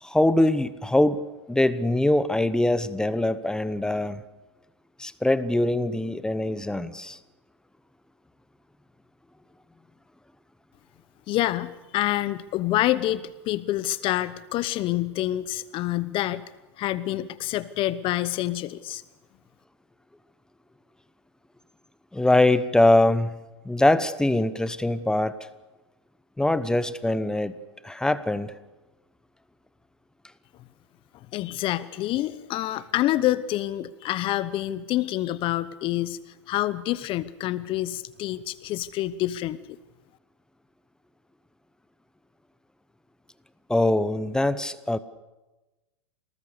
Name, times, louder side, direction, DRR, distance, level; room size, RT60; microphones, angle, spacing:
voice 1, 0.0-4.2 5.0-7.2 22.1-23.4 23.6-25.4 26.4-27.6 27.8-28.5 43.7-45.0, left 1 dB, 5° left, 14 dB, 1.0 m, -23 dB
voice 2, 11.3-16.4 16.8-19.0 31.3-36.2 36.5-39.8, left 15 dB, 35° left, 16 dB, 1.0 m, -27 dB
27.5 x 19.0 x 6.7 m, 1.1 s
hypercardioid pair, 110°, 15 cm